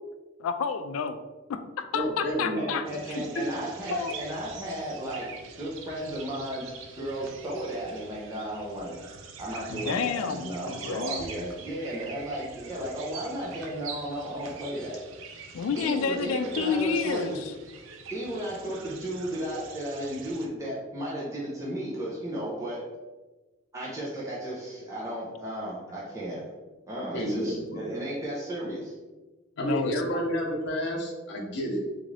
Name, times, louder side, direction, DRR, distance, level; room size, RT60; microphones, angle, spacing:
voice 1, 0.4-1.2 1.5-2.8 3.1-3.2 3.9-4.1 9.7-11.3 15.5-17.4 29.6-30.2, left 6 dB, 85° left, 10 dB, 0.3 m, -30 dB
voice 2, 1.9-2.7 3.3-3.4 27.1-27.9 29.6-31.8, equal, 55° left, -1 dB, 0.7 m, -30 dB
voice 3, 2.6-5.3 5.6-9.0 9.4-15.0 15.8-17.4 18.1-22.8 23.7-26.4 26.9-28.9, right 1 dB, 15° right, -7 dB, 0.6 m, -34 dB
sound 1, 2.8-20.5, right 5 dB, 70° right, 0.4 m, -44 dB
3.6 x 2.5 x 3.2 m, 1.2 s
head